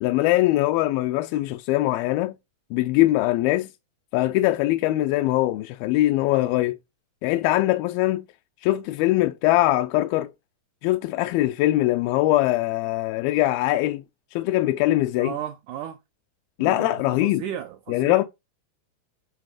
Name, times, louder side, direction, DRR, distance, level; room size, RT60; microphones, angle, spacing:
voice 1, 0.0-2.3 2.7-3.7 4.1-6.8 7.2-8.2 8.6-10.3 10.8-14.0 14.3-15.3 16.6-17.4 17.9-18.2, left 16 dB, 90° left, 2.5 m, -22 dB
voice 2, 15.2-16.0 16.6-18.2, right 10 dB, 80° right, 1.8 m, -35 dB
10.5 x 4.1 x 4.9 m
omnidirectional pair, 4.2 m